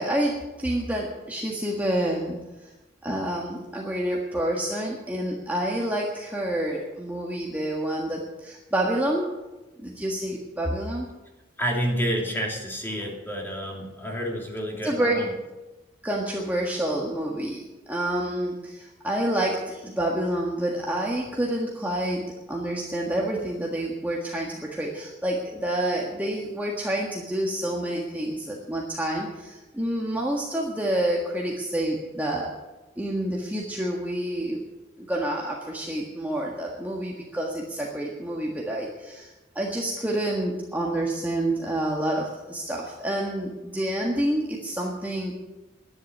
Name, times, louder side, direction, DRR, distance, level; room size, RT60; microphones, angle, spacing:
voice 1, 0.0-2.4 3.0-9.3 9.8-11.1 14.8-15.2 16.0-32.5 33.0-34.6 35.0-45.3, right 1 dB, 10° right, -2 dB, 1.7 m, -28 dB
voice 2, 11.6-15.3, equal, 10° left, 0 dB, 3.0 m, -29 dB
11.5 x 11.0 x 9.2 m, 1.1 s
head